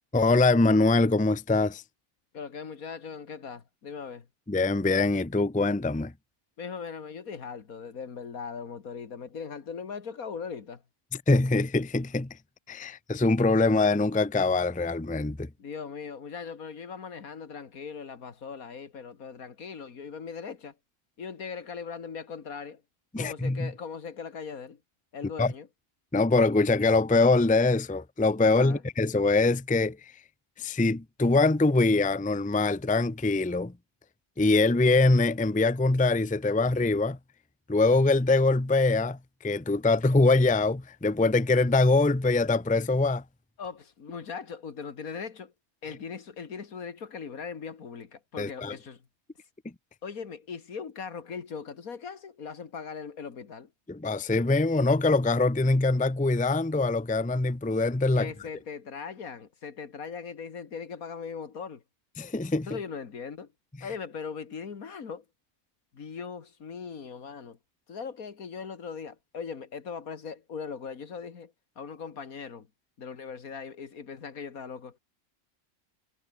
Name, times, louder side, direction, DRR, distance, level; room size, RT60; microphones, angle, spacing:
voice 1, 0.1-1.8 4.5-6.1 11.3-12.4 12.7-15.5 23.1-23.7 25.4-25.5 26.1-30.1 30.6-33.7 34.4-37.2 37.7-43.2 48.4-48.7 53.9-58.3 62.2-62.7, left 3 dB, 5° left, 0.7 m, -23 dB
voice 2, 2.3-4.3 6.6-10.8 15.6-20.8 21.2-22.8 23.2-24.8 25.1-25.7 28.6-28.8 43.6-45.5 45.8-49.0 50.0-53.7 58.1-61.8 62.7-63.5 63.8-65.2 65.9-67.6 67.9-72.7 73.0-75.0, left 6 dB, 70° left, 2.2 m, -39 dB
omnidirectional pair, 1.5 m